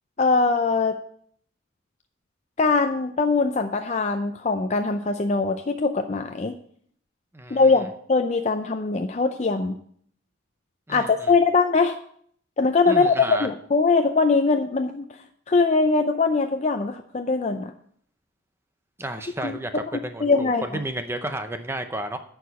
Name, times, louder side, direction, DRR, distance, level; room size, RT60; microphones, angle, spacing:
voice 1, 0.2-1.0 2.6-6.6 7.5-9.7 10.9-12.0 12.6-15.0 15.5-17.7 19.4-19.6 19.9-20.8, left 4 dB, 35° left, 6 dB, 0.4 m, -22 dB
voice 2, 7.3-7.8 10.9-11.3 12.9-13.5 19.0-22.2, right 1 dB, 10° right, 8 dB, 0.6 m, -32 dB
10.5 x 4.7 x 7.0 m, 0.63 s
head